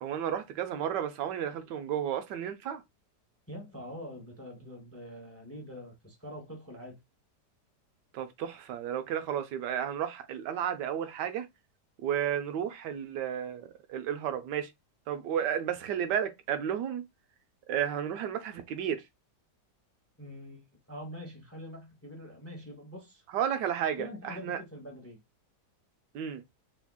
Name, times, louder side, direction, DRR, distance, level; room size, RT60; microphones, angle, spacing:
voice 1, 0.0-2.8 8.1-11.5 12.0-14.7 15.1-17.0 17.7-19.0 23.3-24.6 26.1-26.4, right 9 dB, 85° right, 1.2 m, -32 dB
voice 2, 3.5-7.0 20.2-23.2 24.0-25.2, left 1 dB, 10° left, 0.7 m, -44 dB
3.6 x 3.3 x 2.3 m
omnidirectional pair, 1.8 m